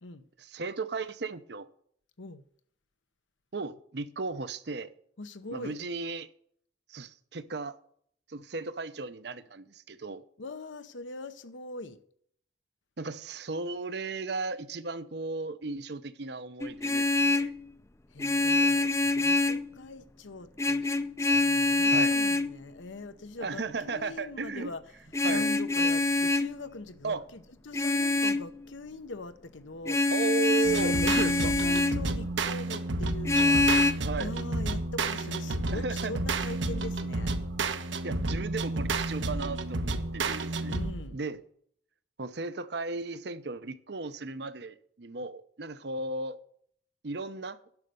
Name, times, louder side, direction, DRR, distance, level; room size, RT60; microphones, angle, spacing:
voice 1, 0.4-1.7 3.5-4.9 5.5-6.3 6.9-7.8 8.3-10.2 13.0-17.5 21.9-22.1 23.4-24.7 25.2-25.5 27.0-27.2 30.1-31.5 34.0-34.3 35.7-36.1 38.0-40.7 41.1-41.4 42.2-46.4 47.0-47.6, right 3 dB, 60° right, 0.7 m, -35 dB
voice 2, 5.2-5.8 10.4-12.0 18.1-24.8 25.3-30.1 30.5-37.3 40.7-41.2, left 2 dB, 85° left, 0.9 m, -42 dB
Vehicle horn car horn honking, 16.6-17.6 18.2-19.7 20.6-22.5 25.1-26.5 27.7-28.5 29.9-32.0 33.3-33.9, left 2 dB, 15° left, 0.4 m, -25 dB
sound 1, 30.6-41.1, right 2 dB, 80° right, 1.0 m, -31 dB
10.5 x 6.5 x 6.7 m
head